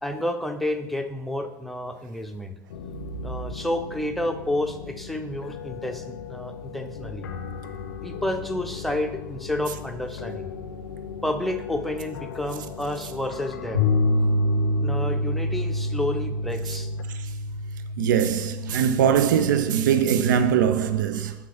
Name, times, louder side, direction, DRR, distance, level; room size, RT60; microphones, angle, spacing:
voice 1, 0.0-2.5 3.2-7.3 8.0-10.5 11.2-13.9 14.8-16.9, left 1 dB, ahead, 0.7 m, -30 dB
sound 1, 2.7-17.0, left 6 dB, 65° left, 0.5 m, -38 dB
sound 2, 13.7-20.0, left 1 dB, 85° right, 1.6 m, -26 dB
voice 2, 18.0-21.3, right 8 dB, 65° right, 0.4 m, -21 dB
6.1 x 4.5 x 5.8 m
figure-of-eight pair, 75°, 11 cm